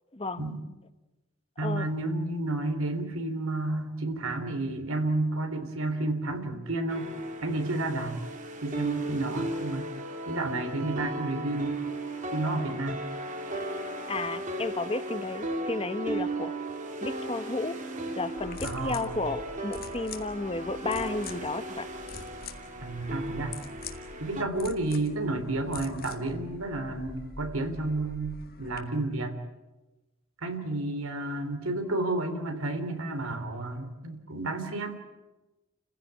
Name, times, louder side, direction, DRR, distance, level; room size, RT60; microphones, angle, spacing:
voice 1, 0.1-0.4 1.6-1.9 14.1-16.5 17.0-17.8 18.2-21.9, left 2 dB, 25° left, 10 dB, 1.2 m, -33 dB
voice 2, 1.6-7.1 7.4-8.2 8.6-9.9 10.3-11.8 12.3-13.0 18.6-19.2 22.8-23.6 24.2-29.4 30.4-35.0, right 2 dB, 80° right, 7 dB, 3.4 m, -31 dB
sound 1, 6.9-24.4, right 2 dB, 35° right, 2.4 m, -36 dB
sound 2, 18.4-28.8, left 4 dB, 45° left, 2.0 m, -44 dB
30.0 x 15.5 x 10.0 m, 1.1 s
head